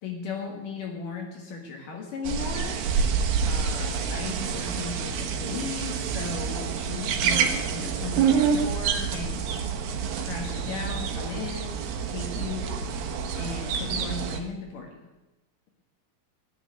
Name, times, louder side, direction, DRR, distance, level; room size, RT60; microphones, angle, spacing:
voice 1, 0.0-2.8 3.4-9.6 10.2-11.8 12.1-12.7 13.3-15.1, left 4 dB, 70° left, 1 dB, 3.2 m, -36 dB
sound 1, 2.2-14.4, right 6 dB, 85° right, 3.0 m, -27 dB
17.0 x 6.5 x 9.7 m, 1.0 s
omnidirectional pair, 4.0 m